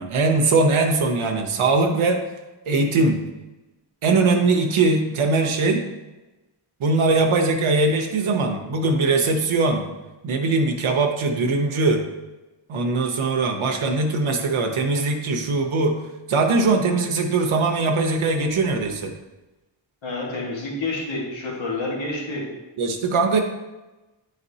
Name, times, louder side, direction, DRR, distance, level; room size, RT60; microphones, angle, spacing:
voice 1, 0.0-2.2 2.7-3.2 4.0-5.9 6.8-9.9 10.2-12.0 12.7-16.0 16.3-19.1 22.8-23.4, right 3 dB, 90° right, 4 dB, 0.8 m, -21 dB
voice 2, 20.0-22.4, left 2 dB, 70° left, -3 dB, 1.6 m, -28 dB
10.0 x 4.2 x 2.7 m, 1.1 s
wide cardioid pair, 130°, 48 cm